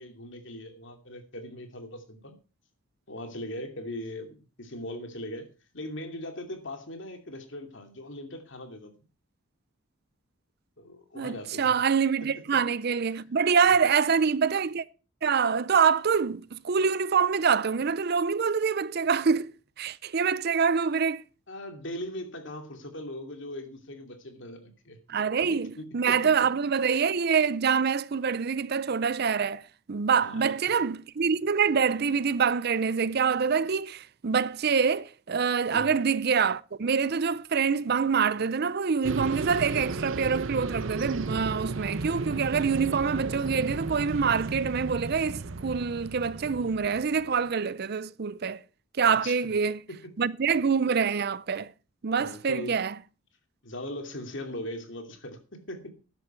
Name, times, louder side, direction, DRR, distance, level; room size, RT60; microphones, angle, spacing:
voice 1, 0.0-2.4 3.1-5.5 5.7-8.9 10.8-11.7 12.2-12.3 13.7-13.9 21.5-25.0 25.5-26.2 30.2-30.5 35.7-36.0 49.1-49.4 49.9-50.1 52.2-52.8 53.6-55.9, left 1 dB, 60° left, 2.7 m, -40 dB
voice 2, 11.2-14.8 15.2-19.5 19.8-21.2 25.1-29.6 29.9-48.6 49.0-49.8 50.2-51.7 52.0-52.9, right 6 dB, 50° right, 0.5 m, -25 dB
sound 1, 39.0-47.4, right 3 dB, 70° right, 0.9 m, -34 dB
13.5 x 10.5 x 4.5 m
head